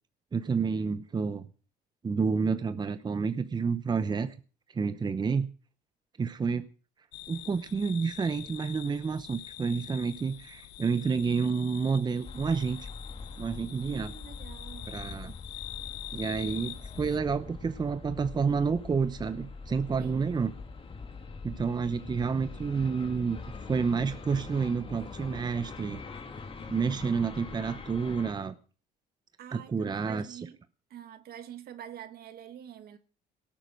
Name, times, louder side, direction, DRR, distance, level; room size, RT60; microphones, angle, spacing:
voice 1, 0.3-1.5 2.0-4.3 4.7-5.5 6.2-6.6 7.3-12.9 13.4-14.1 14.9-15.3 16.1-20.5 21.4-23.4 23.7-26.0 26.7-28.5 29.5-30.4, right 5 dB, 25° right, 0.8 m, -29 dB
sound 1, 7.1-17.2, left 15 dB, 80° left, 0.9 m, -45 dB
sound 2, 12.2-28.3, left 4 dB, 30° left, 2.3 m, -43 dB
voice 2, 13.8-15.0 20.0-20.3 29.4-30.6 30.9-33.0, right 9 dB, 65° right, 1.8 m, -46 dB
18.0 x 8.8 x 6.3 m
cardioid pair, 110°, 17 cm